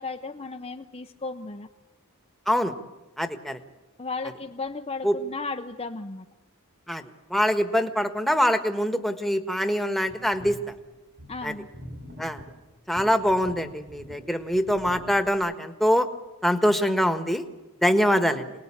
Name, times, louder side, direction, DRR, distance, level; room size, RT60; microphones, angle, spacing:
voice 1, 0.0-1.7 4.0-6.3 11.3-11.7, left 3 dB, 25° left, 5 dB, 0.7 m, -35 dB
voice 2, 3.2-3.6 5.0-5.2 6.9-7.0 7.3-10.7 11.4-11.5 12.2-12.4 12.9-16.1 16.4-17.4 17.8-18.5, equal, ahead, 6 dB, 1.4 m, -24 dB
sound 1, 10.1-10.6 11.2-12.5 12.9-14.2 14.5-15.3, equal, 55° right, 6.9 m, -44 dB
27.5 x 19.5 x 8.6 m, 1.1 s
head